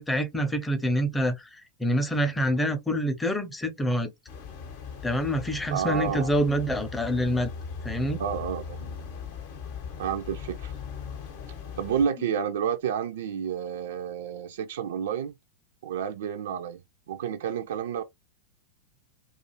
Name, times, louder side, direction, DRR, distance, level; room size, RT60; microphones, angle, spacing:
voice 1, 0.0-1.5 1.8-4.1 5.0-7.5 7.8-8.2, equal, 10° left, 0.6 m, -26 dB
sound 1, 4.3-12.1, left 6 dB, 50° left, 0.7 m, -39 dB
voice 2, 5.7-6.3 8.2-8.8 10.0-10.7 11.8-15.3 15.8-16.8 17.1-18.0, right 8 dB, 60° right, 0.3 m, -30 dB
2.4 x 2.4 x 2.8 m
figure-of-eight pair, 90°, 0 cm